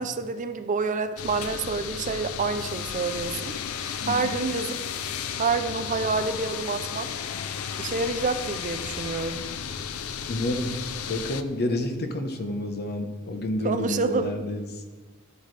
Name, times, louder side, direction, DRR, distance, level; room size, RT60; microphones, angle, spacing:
voice 1, 0.0-3.5 4.0-4.8 5.4-7.1 7.8-9.4 13.6-14.4, right 4 dB, 35° right, 9 dB, 0.5 m, -28 dB
sound 1, 1.2-11.4, left 7 dB, 70° left, 0.5 m, -33 dB
voice 2, 4.0-4.3 10.3-10.7 11.0-14.7, left 1 dB, 45° left, 6 dB, 1.0 m, -29 dB
11.5 x 10.0 x 3.3 m, 1.3 s
head